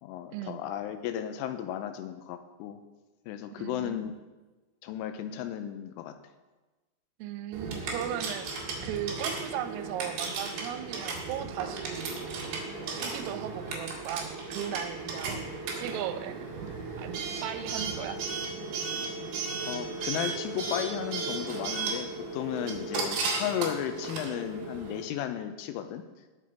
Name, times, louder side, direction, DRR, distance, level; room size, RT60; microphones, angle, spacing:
voice 1, 0.0-2.8 3.3-4.1 4.8-6.1 19.6-22.1 22.3-26.0, left 10 dB, 85° left, 8 dB, 3.2 m, -34 dB
voice 2, 3.5-4.0 7.2-12.6 12.9-16.4 17.0-18.2, right 10 dB, 90° right, 9 dB, 3.4 m, -37 dB
Coin (dropping) / Alarm, 7.5-25.0, right 4 dB, 60° right, 3.8 m, -35 dB
19.5 x 6.5 x 4.4 m, 1.2 s
omnidirectional pair, 5.7 m